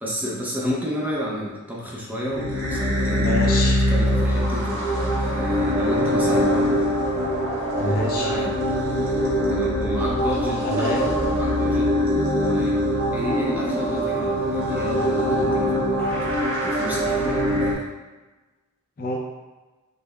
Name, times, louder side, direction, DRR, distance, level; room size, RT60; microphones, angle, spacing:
voice 1, 0.0-3.3 3.9-6.9 7.8-8.6 9.5-11.9 12.4-16.2 16.6-17.8, equal, 10° right, -4 dB, 0.5 m, -31 dB
sound 1, 2.3-17.7, equal, 80° right, 0.9 m, -23 dB
voice 2, 3.2-3.8 7.8-8.3 10.6-11.0 19.0-19.2, left 1 dB, 45° left, -1 dB, 0.5 m, -26 dB
5.2 x 2.1 x 2.2 m, 1.2 s
head